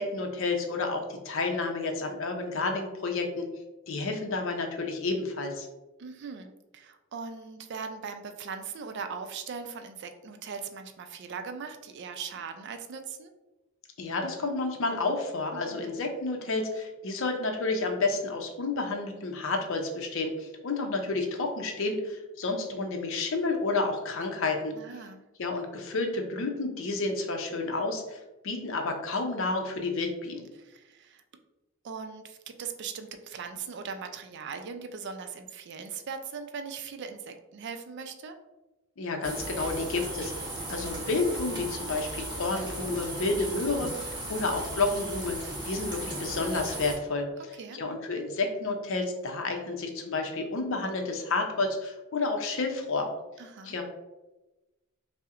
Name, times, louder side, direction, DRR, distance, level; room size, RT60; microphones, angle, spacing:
voice 1, 0.0-3.5 3.9-5.7 14.0-24.7 25.4-30.4 39.0-40.3 40.7-43.9 44.3-45.4 45.6-47.3 47.7-53.1 53.6-53.8, left 3 dB, 65° left, 4 dB, 0.6 m, -30 dB
voice 2, 6.0-13.3 15.5-15.9 24.7-25.2 30.6-31.2 31.8-38.4 47.5-47.8 53.4-53.8, right 5 dB, 55° right, 7 dB, 0.4 m, -40 dB
sound 1, 39.2-47.0, right 1 dB, 20° right, 0.9 m, -37 dB
5.4 x 2.1 x 2.4 m, 1.0 s
head